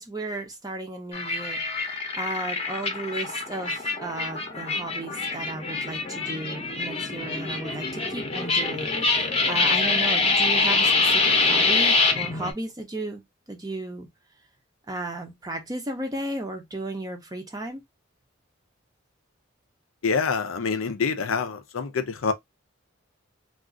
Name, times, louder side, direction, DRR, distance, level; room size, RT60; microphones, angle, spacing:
voice 1, 0.0-13.2 13.5-14.1 14.9-17.8, right 2 dB, 20° right, 0.5 m, -34 dB
sound 1, 1.1-12.5, left 3 dB, 30° left, 0.7 m, -25 dB
voice 2, 20.0-22.3, left 5 dB, 90° left, 0.6 m, -26 dB
2.4 x 2.4 x 3.6 m
head